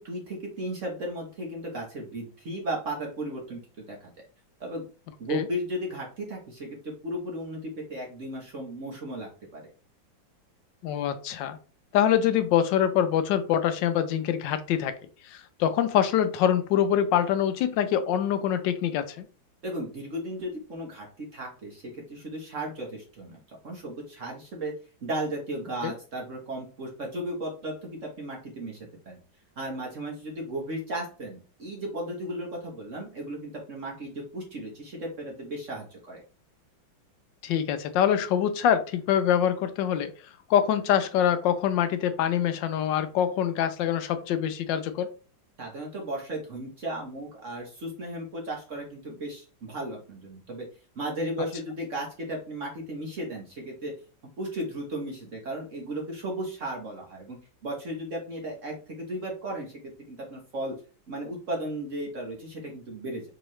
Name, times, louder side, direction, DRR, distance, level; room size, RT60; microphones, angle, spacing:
voice 1, 0.0-4.1 4.6-4.9 5.2-9.7 19.6-24.7 25.0-28.8 29.1-29.2 29.6-36.2 45.6-50.7 50.9-53.9 54.4-60.8 61.1-63.2, right 1 dB, 45° right, -1 dB, 1.2 m, -35 dB
voice 2, 10.8-11.6 11.9-14.9 15.3-19.3 25.8-25.9 37.4-40.1 40.5-45.1, left 9 dB, 75° left, 10 dB, 1.2 m, -24 dB
4.6 x 3.0 x 3.1 m, 0.37 s
omnidirectional pair, 2.1 m